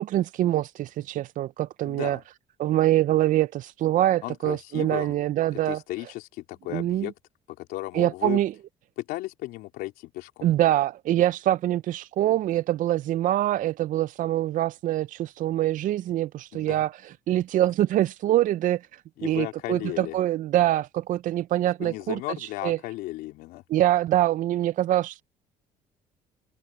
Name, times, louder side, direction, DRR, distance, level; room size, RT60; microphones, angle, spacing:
voice 1, 0.0-2.2 2.6-5.8 6.7-7.1 7.9-8.5 10.4-22.8 23.7-25.2, right 13 dB, 60° right, 0.5 m, -24 dB
voice 2, 1.8-2.2 4.2-5.2 5.5-7.1 7.5-8.4 9.0-10.5 16.5-16.8 19.2-20.2 21.8-23.6, left 18 dB, 80° left, 3.8 m, -35 dB
open air
supercardioid pair, 75°, 16 cm